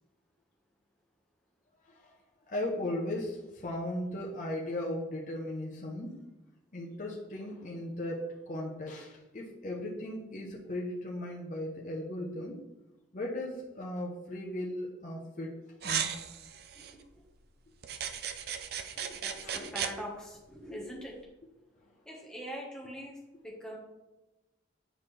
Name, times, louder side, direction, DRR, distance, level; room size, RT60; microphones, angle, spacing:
voice 1, 1.8-2.2 2.5-6.2 6.7-12.6 13.1-15.5 15.8-16.1 19.4-19.7, left 1 dB, 40° left, -3 dB, 0.8 m, -37 dB
sound 1, 15.8-16.9 17.8-19.9, right 8 dB, 55° right, 0.4 m, -36 dB
voice 2, 16.7-17.2 18.9-21.1 22.1-23.2 23.4-23.8, equal, 5° left, -4 dB, 1.2 m, -43 dB
9.1 x 4.0 x 3.3 m, 1.0 s
head